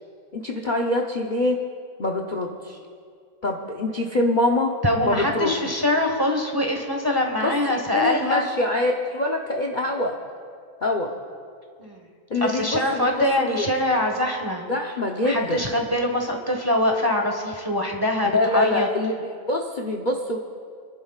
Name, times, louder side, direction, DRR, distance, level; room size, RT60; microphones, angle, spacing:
voice 1, 0.3-1.6 2.0-2.8 3.4-4.7 5.0-5.5 7.4-10.2 10.8-11.1 12.3-13.1 13.4-13.7 14.7-15.6 18.3-20.4, left 2 dB, 40° left, 1 dB, 0.7 m, -24 dB
voice 2, 4.8-8.4 11.8-12.0 12.4-14.6 15.2-18.9, left 1 dB, 15° right, 1 dB, 1.1 m, -23 dB
29.5 x 11.0 x 2.4 m, 2.2 s
omnidirectional pair, 1.6 m